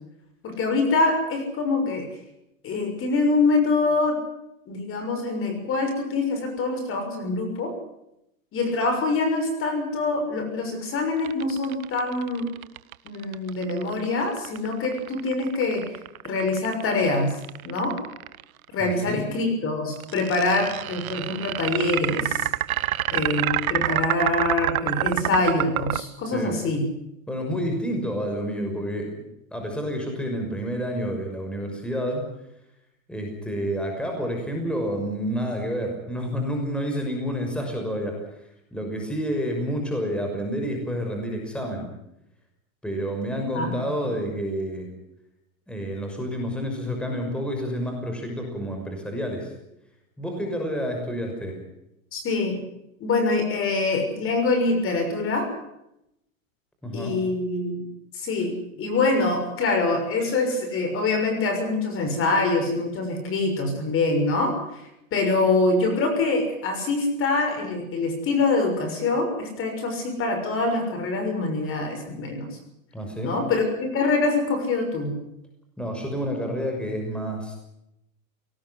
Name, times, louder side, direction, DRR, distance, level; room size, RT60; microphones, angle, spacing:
voice 1, 0.4-2.1 2.6-4.2 4.7-7.7 8.5-12.5 13.0-15.8 16.2-17.3 17.6-18.0 18.7-22.5 23.1-26.8 43.5-43.8 52.1-52.5 53.0-55.5 56.9-57.8 58.1-64.8 65.1-72.6 73.2-75.2, left 3 dB, 30° left, 6 dB, 6.5 m, -24 dB
sound 1, 11.2-18.4 20.0-26.0, right 15 dB, 85° right, 1.1 m, -27 dB
voice 2, 18.8-19.2 26.3-26.5 27.3-29.1 29.5-32.2 33.1-38.2 38.7-41.9 42.8-44.9 45.7-49.5 50.2-51.6 56.8-57.1 72.9-73.3 75.8-77.6, equal, ahead, 2 dB, 6.1 m, -29 dB
22.5 x 19.0 x 8.0 m, 0.82 s
supercardioid pair, 140°, 41 cm